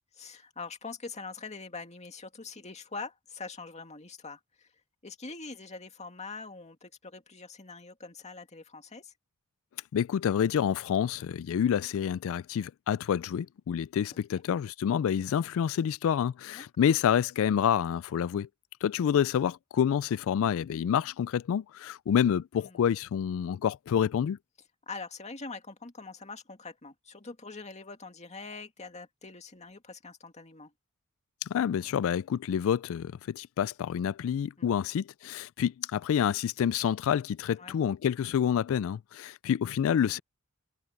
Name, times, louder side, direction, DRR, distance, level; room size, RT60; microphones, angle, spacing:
voice 1, 0.1-4.7 5.0-9.1 14.3-14.4 16.5-16.9 22.6-22.8 24.9-30.7 34.6-34.8 37.6-37.8, left 4 dB, 30° left, 2.2 m, -44 dB
voice 2, 9.9-18.5 18.8-24.4 31.5-40.2, left 8 dB, 65° left, 0.3 m, -28 dB
head